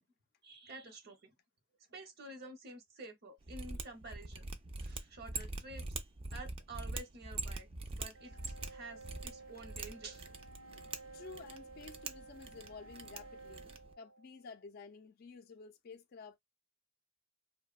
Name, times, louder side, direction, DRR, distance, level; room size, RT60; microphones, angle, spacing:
voice 1, 0.4-1.3 1.9-4.5 4.8-5.8 6.3-10.3, right 2 dB, 55° right, 0.7 m, -50 dB
Mechanisms, 3.4-13.9, right 3 dB, 30° right, 0.3 m, -44 dB
sound 1, 8.1-14.6, right 3 dB, 90° right, 0.6 m, -54 dB
voice 2, 11.1-13.6 14.0-16.4, left 4 dB, 50° left, 0.3 m, -52 dB
2.8 x 2.1 x 2.3 m
head